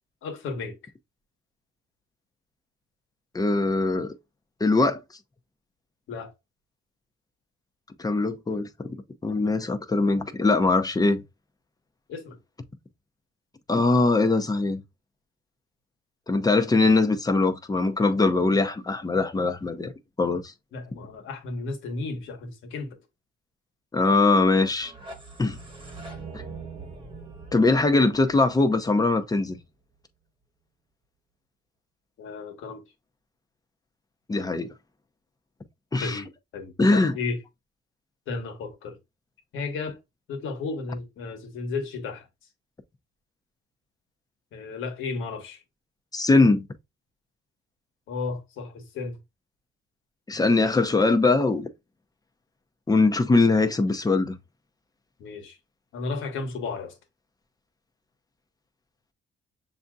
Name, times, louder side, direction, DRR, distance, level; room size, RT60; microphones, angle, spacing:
voice 1, 0.2-0.9 6.1-6.3 12.1-12.4 20.7-23.0 28.2-28.3 32.2-32.8 36.0-37.4 38.3-39.0 39.5-40.0 40.3-42.3 44.5-45.6 48.1-49.2 55.2-55.6 55.9-57.0, left 4 dB, 80° left, 1.2 m, -34 dB
voice 2, 3.3-4.1 4.6-5.0 8.0-11.2 13.7-14.8 16.3-19.9 20.2-20.5 23.9-24.9 25.4-25.6 26.3-26.4 27.5-29.6 34.3-34.7 35.9-36.2 36.8-37.2 46.1-46.7 50.3-51.7 52.9-54.3, left 3 dB, 20° left, 0.7 m, -22 dB
sound 1, 24.7-29.6, right 4 dB, 25° right, 1.2 m, -43 dB
6.9 x 2.7 x 2.3 m
cardioid pair, 90°, 20 cm